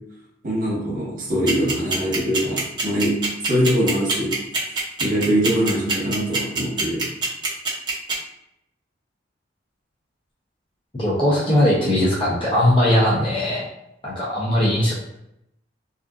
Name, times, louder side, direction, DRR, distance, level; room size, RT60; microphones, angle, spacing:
voice 1, 0.4-3.2 3.5-4.4 5.0-7.1, equal, 45° right, -4 dB, 0.9 m, -22 dB
sound 1, 1.5-8.1, right 4 dB, 25° right, 0.6 m, -23 dB
voice 2, 11.0-13.7 14.0-14.9, left 1 dB, 30° left, -7 dB, 0.7 m, -19 dB
2.5 x 2.4 x 2.4 m, 0.79 s
head